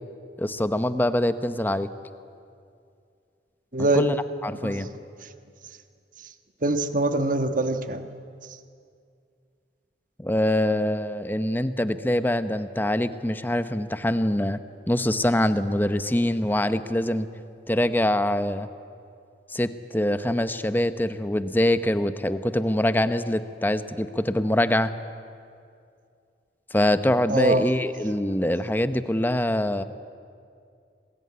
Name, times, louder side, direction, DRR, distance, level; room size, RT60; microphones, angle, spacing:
voice 1, 0.4-1.9 3.9-4.2 4.4-4.9 10.2-14.6 14.9-17.3 17.7-18.7 19.5-24.9 26.7-29.8, left 1 dB, 10° left, 11 dB, 0.9 m, -24 dB
voice 2, 3.7-4.1 4.6-4.8 6.6-8.1 27.3-27.8, right 2 dB, 50° right, 8 dB, 1.5 m, -23 dB
26.0 x 20.5 x 9.6 m, 2.4 s
head